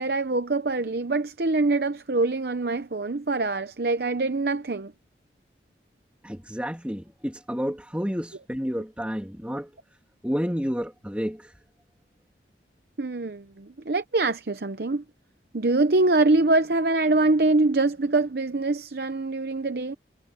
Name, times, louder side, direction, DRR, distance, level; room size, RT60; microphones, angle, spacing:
voice 1, 0.0-4.9 13.0-15.0 15.5-19.9, right 2 dB, 60° right, 0.8 m, -24 dB
voice 2, 6.2-9.7 10.2-11.5, equal, 5° right, 2.8 m, -30 dB
head